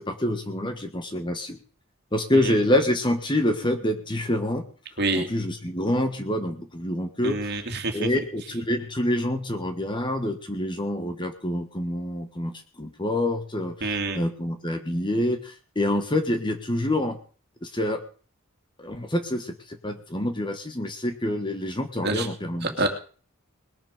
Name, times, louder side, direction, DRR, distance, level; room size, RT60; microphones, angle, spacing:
voice 1, 0.0-1.6 2.1-4.6 5.1-7.6 7.9-17.2 17.6-18.0 18.8-22.7, left 1 dB, 20° left, 7 dB, 1.5 m, -27 dB
voice 2, 5.0-5.3 7.2-8.1 13.8-14.2 22.0-22.3 22.6-22.9, right 2 dB, 50° right, 5 dB, 2.5 m, -26 dB
20.5 x 7.1 x 6.7 m, 0.41 s
head